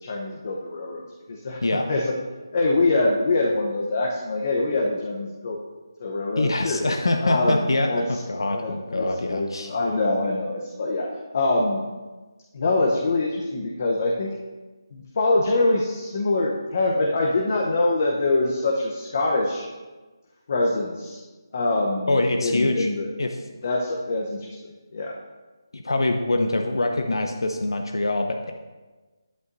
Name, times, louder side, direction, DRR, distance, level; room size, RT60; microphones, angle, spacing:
voice 1, 0.0-1.6 1.9-2.2 2.5-5.6 6.0-6.8 7.2-8.2 8.5-11.8 12.5-14.3 14.9-19.7 20.5-21.2 21.5-23.1 23.6-24.6 24.9-25.2, left 2 dB, 40° left, -1 dB, 0.9 m, -24 dB
voice 2, 6.4-9.7 22.1-22.9 23.2-23.4 25.7-28.5, left 2 dB, 85° left, 4 dB, 0.7 m, -24 dB
11.0 x 7.9 x 2.7 m, 1.2 s
figure-of-eight pair, 170°, 2 cm